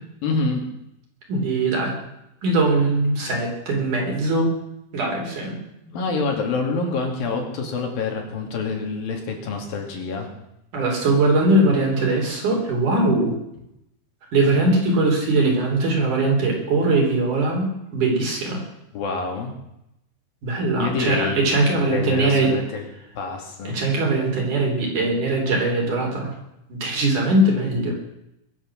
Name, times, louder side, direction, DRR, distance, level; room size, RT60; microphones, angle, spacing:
voice 1, 0.2-0.6 5.9-10.3 18.9-19.5 20.8-21.4 21.9-22.8 23.2-23.8, left 4 dB, 70° left, 2 dB, 4.1 m, -26 dB
voice 2, 1.3-1.9 2.4-4.5 4.9-5.6 10.7-13.4 14.3-17.7 17.9-18.6 20.4-22.5 23.6-26.3 26.7-27.9, right 2 dB, 55° right, -1 dB, 5.1 m, -21 dB
22.0 x 7.5 x 7.4 m, 0.83 s
omnidirectional pair, 4.4 m